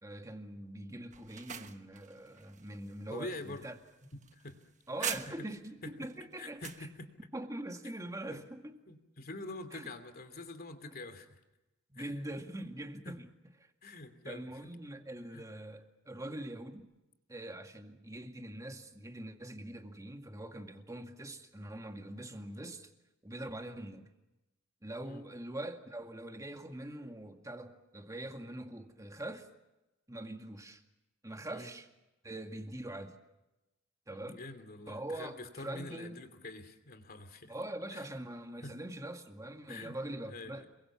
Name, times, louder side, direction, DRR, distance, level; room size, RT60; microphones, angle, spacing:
voice 1, 0.0-3.8 4.9-6.6 7.3-8.8 9.7-9.9 11.9-13.3 14.3-16.9 17.3-22.9 23.2-24.1 24.8-29.5 30.1-30.8 31.2-31.9 32.2-33.2 34.1-34.4 34.9-36.2 37.5-40.7, right 1 dB, 15° right, 2.1 m, -43 dB
sound 1, 1.1-5.7 6.1-6.9, right 7 dB, 35° right, 1.3 m, -44 dB
voice 2, 3.1-3.6 4.1-4.6 5.0-5.1 5.4-5.5 5.8-5.9 6.4-7.1 8.3-8.4 8.9-11.4 12.0-12.3 13.0-13.2 13.8-14.5 15.3-15.5 25.0-25.2 31.5-31.7 34.1-37.5 37.9-38.1 38.6-38.7 39.7-40.0 40.2-40.7, left 2 dB, 45° left, 2.9 m, -46 dB
28.0 x 22.5 x 7.3 m
head